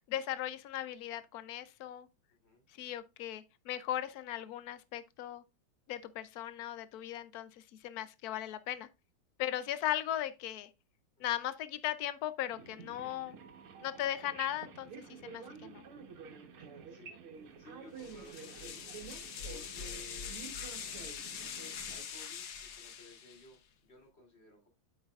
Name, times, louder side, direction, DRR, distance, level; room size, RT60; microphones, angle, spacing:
voice 1, 0.1-2.1 2.8-5.4 5.9-7.5 7.8-8.9 9.4-10.7 11.2-13.4 13.8-15.8, left 12 dB, 75° left, 0.8 m, -37 dB
voice 2, 2.3-2.7 11.2-11.4 16.6-18.9 19.4-24.7, left 2 dB, 30° left, 3.2 m, -57 dB
sound 1, 12.5-22.0, right 6 dB, 80° right, 2.1 m, -50 dB
sound 2, 18.0-23.6, left 7 dB, 55° left, 1.3 m, -43 dB
8.7 x 7.3 x 2.4 m
omnidirectional pair, 2.3 m